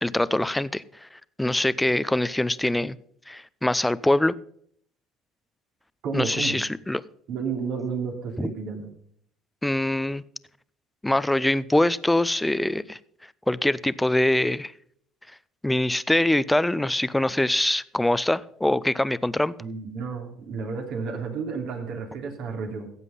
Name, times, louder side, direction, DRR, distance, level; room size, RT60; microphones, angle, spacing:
voice 1, 0.0-1.1 1.4-3.0 3.3-4.3 6.1-7.0 8.4-8.5 9.6-10.2 11.0-13.0 13.5-14.7 15.6-19.5, left 1 dB, 10° left, 0.6 m, -23 dB
voice 2, 6.0-6.6 7.3-8.9 19.6-22.9, right 5 dB, 60° right, 3.0 m, -31 dB
15.0 x 8.2 x 5.7 m
hypercardioid pair, 65°, 0 cm